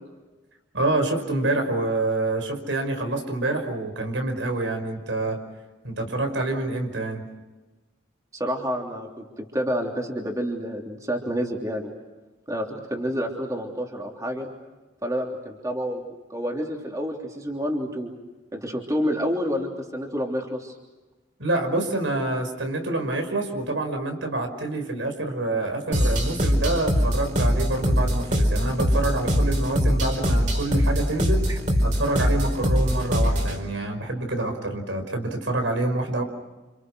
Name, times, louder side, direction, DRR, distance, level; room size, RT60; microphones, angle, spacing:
voice 1, 0.7-5.4 5.8-7.3 21.4-31.5 31.8-36.2, right 2 dB, 85° right, 5 dB, 5.3 m, -27 dB
voice 2, 8.3-11.9 12.5-14.5 15.0-18.1 18.5-20.8 31.5-31.6, equal, 20° right, 1 dB, 3.3 m, -29 dB
sound 1, 25.9-33.6, equal, 40° right, 4.7 m, -22 dB
29.0 x 28.5 x 6.4 m, 1.2 s
head